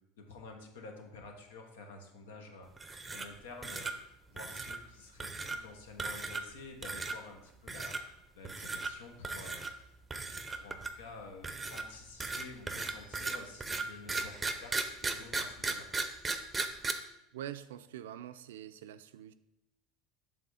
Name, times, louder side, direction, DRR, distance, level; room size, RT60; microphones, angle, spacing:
voice 1, 0.2-3.9 4.3-8.1 8.4-9.6 10.3-15.9, left 3 dB, 90° left, 4 dB, 1.0 m, -50 dB
sound 1, 2.8-3.4 3.6-3.9 4.4-4.8 5.2-5.6 6.0-6.5 6.8-7.2 7.7-8.0 8.4-8.9 9.2-9.7 10.1-11.0 11.4-16.9, right 3 dB, 15° right, 0.5 m, -36 dB
voice 2, 17.3-19.3, right 11 dB, 90° right, 12 dB, 0.3 m, -45 dB
6.1 x 3.5 x 4.9 m, 0.85 s
supercardioid pair, 105°, 0 cm